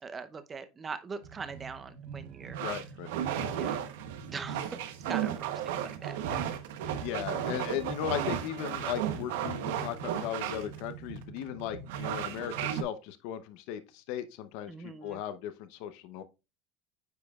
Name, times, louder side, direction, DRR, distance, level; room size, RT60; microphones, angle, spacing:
voice 1, 0.0-2.6 3.5-3.8 4.3-4.8 5.1-6.4 14.7-15.2, right 5 dB, 20° right, 0.7 m, -42 dB
sound 1, 1.2-12.8, right 9 dB, 90° right, 0.9 m, -35 dB
voice 2, 2.6-3.1 7.0-16.2, left 10 dB, 65° left, 0.7 m, -37 dB
9.2 x 5.0 x 2.4 m
supercardioid pair, 145°, 0 cm